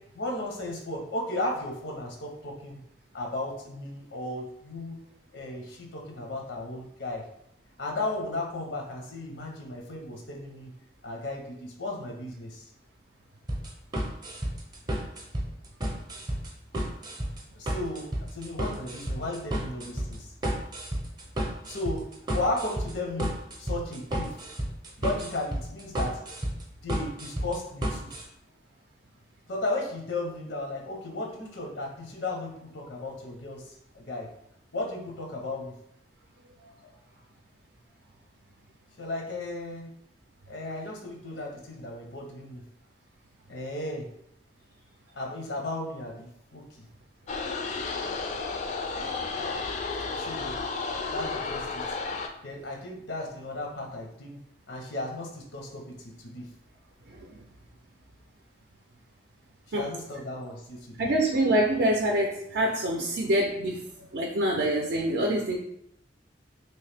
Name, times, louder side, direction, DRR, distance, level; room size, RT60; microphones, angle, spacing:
voice 1, 0.2-2.8 3.1-5.0 5.3-7.3 7.8-10.7 11.0-12.6 17.5-20.3 21.7-24.4 25.0-26.2 26.8-28.1 29.5-34.3 34.7-35.7 36.8-36.9 39.0-39.9 40.5-42.6 43.5-44.1 45.1-46.8 50.2-50.6 51.1-51.8 52.4-54.4 54.7-56.5 59.7-61.1, left 2 dB, 90° left, 1 dB, 0.8 m, -35 dB
sound 1, 13.5-28.2, right 1 dB, 25° right, 0.6 m, -32 dB
sound 2, 47.3-52.3, left 4 dB, 40° left, 0.3 m, -32 dB
voice 2, 61.0-63.8 64.1-65.6, right 1 dB, 65° right, 0 dB, 0.5 m, -25 dB
3.1 x 2.7 x 3.3 m, 0.74 s
head